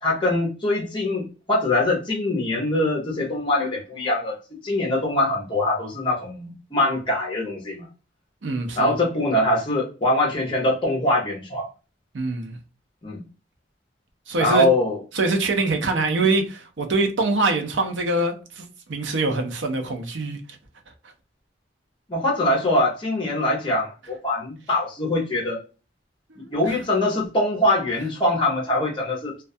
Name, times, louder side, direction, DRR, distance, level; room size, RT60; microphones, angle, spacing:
voice 1, 0.0-7.9 8.8-11.7 13.0-13.2 14.4-15.0 22.1-25.6 26.5-29.4, left 1 dB, 25° left, 0.6 m, -23 dB
voice 2, 8.4-8.9 12.1-12.6 14.3-14.6 15.1-20.4 26.3-26.8, right 3 dB, 80° right, 0.6 m, -24 dB
2.2 x 2.2 x 2.6 m
head